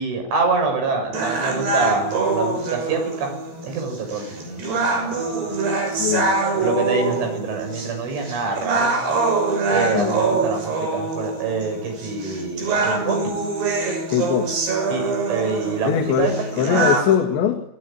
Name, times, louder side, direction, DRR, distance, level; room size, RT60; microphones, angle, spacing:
voice 1, 0.0-3.3 3.6-5.6 6.6-9.0 9.7-13.2 14.9-16.9, right 4 dB, 75° right, 4 dB, 9.6 m, -26 dB
sound 1, 1.1-17.1, right 3 dB, 60° right, 8.4 m, -24 dB
voice 2, 6.0-6.3 9.9-10.2 14.1-14.6 15.8-17.6, left 8 dB, 70° left, 3 dB, 4.3 m, -21 dB
27.5 x 22.0 x 9.1 m, 0.78 s
omnidirectional pair, 5.6 m